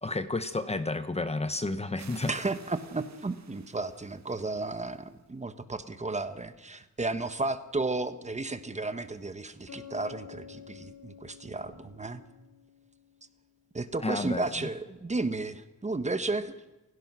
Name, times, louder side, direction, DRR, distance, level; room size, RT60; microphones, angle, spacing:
voice 1, 0.0-2.3 14.0-14.7, left 2 dB, 20° left, 11 dB, 1.0 m, -31 dB
sound 1, 2.0-5.3, right 7 dB, 60° right, 1.9 m, -54 dB
voice 2, 2.3-12.2 13.7-16.5, right 3 dB, 20° right, 11 dB, 1.3 m, -33 dB
Bass guitar, 9.7-13.3, left 8 dB, 65° left, 3.0 m, -50 dB
29.0 x 16.5 x 6.3 m, 1.0 s
wide cardioid pair, 145°, 31 cm